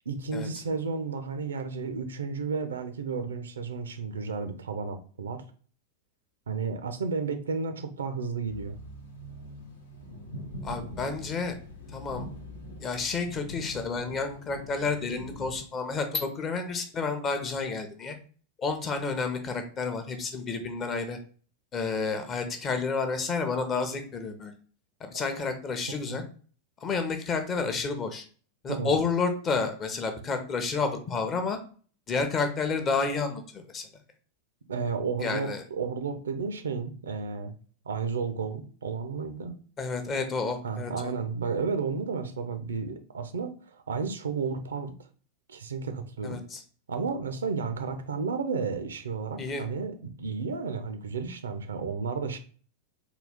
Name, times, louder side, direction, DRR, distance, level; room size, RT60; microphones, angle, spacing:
voice 1, 0.1-5.4 6.5-8.8 26.1-26.2 28.7-29.0 34.7-37.5 37.9-39.5 40.6-44.9 45.5-46.4 46.9-52.4, right 5 dB, 70° right, 8 dB, 0.5 m, -32 dB
sound 1, 8.5-15.6, equal, 65° left, 0.7 m, -43 dB
voice 2, 10.6-11.5 11.9-12.3 12.8-18.2 18.6-21.2 21.7-24.5 25.0-26.2 26.8-28.3 28.6-31.6 32.1-33.9 35.2-35.6 39.8-41.1 46.2-46.6 49.4-49.7, left 4 dB, 25° left, 6 dB, 0.6 m, -30 dB
3.9 x 2.3 x 3.4 m, 0.42 s
figure-of-eight pair, 90°, 0 cm